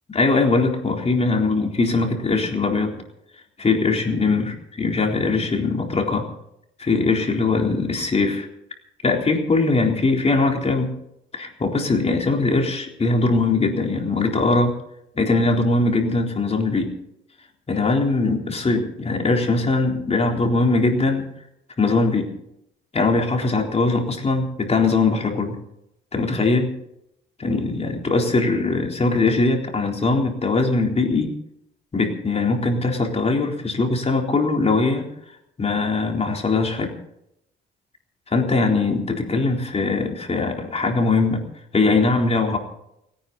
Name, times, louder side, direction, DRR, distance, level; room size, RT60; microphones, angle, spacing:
voice 1, 0.1-3.0 3.6-6.3 6.8-8.5 9.0-10.9 11.3-14.7 15.2-16.9 17.7-21.3 21.8-22.3 22.9-25.6 26.1-26.7 27.4-31.3 31.9-35.1 35.6-36.9 38.3-41.4 41.7-42.6, left 3 dB, 30° left, 2 dB, 3.9 m, -21 dB
29.5 x 10.0 x 4.2 m, 0.79 s
cardioid pair, 90°, 20 cm